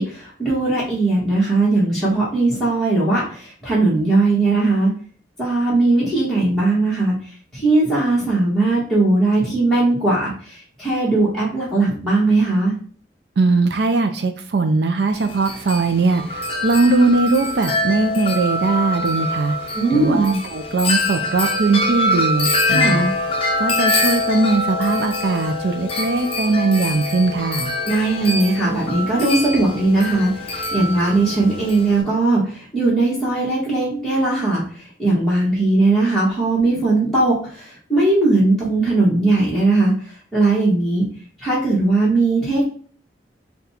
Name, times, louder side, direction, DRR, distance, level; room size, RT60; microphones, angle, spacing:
voice 1, 0.0-4.9 5.4-7.1 7.5-12.7 19.7-20.4 22.7-23.1 27.9-39.9 40.3-41.0 41.4-42.7, right 2 dB, ahead, -9 dB, 1.3 m, -19 dB
voice 2, 13.4-23.1 23.6-27.7, right 3 dB, 65° right, 7 dB, 0.4 m, -20 dB
Wind chime, 15.1-32.0, left 2 dB, 30° left, 0.6 m, -24 dB
3.8 x 2.3 x 4.2 m, 0.43 s
head